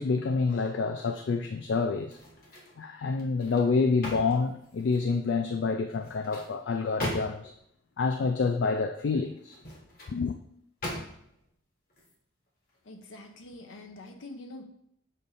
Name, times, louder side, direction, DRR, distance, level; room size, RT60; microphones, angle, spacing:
voice 1, 0.0-2.2 2.8-7.5 8.0-9.6 10.1-10.4, left 4 dB, 70° left, 0.3 m, -28 dB
sound 1, 2.0-2.8 3.2-5.2 5.9-7.6 9.4-10.2 10.8-11.4 11.9-12.1, equal, 45° left, 1.3 m, -40 dB
voice 2, 12.8-14.6, left 2 dB, 90° left, 0.7 m, -45 dB
6.6 x 2.6 x 5.5 m
head